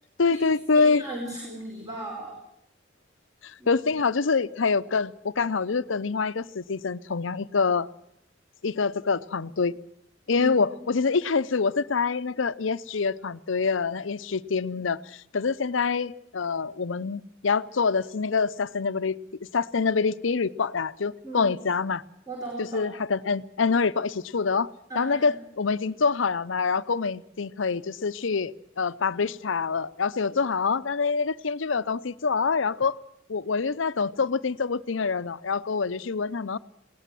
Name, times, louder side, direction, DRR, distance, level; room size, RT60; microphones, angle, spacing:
voice 1, 0.2-1.0 3.4-7.9 8.6-9.8 10.3-19.2 19.5-22.0 22.6-24.7 24.9-33.0 33.3-36.6, left 5 dB, 85° left, 15 dB, 0.7 m, -26 dB
voice 2, 0.7-2.3 3.6-3.8 10.3-10.8 21.2-21.5 22.3-22.9 24.9-25.4, right 1 dB, 20° right, -2 dB, 5.2 m, -37 dB
21.0 x 17.5 x 7.7 m, 0.77 s
head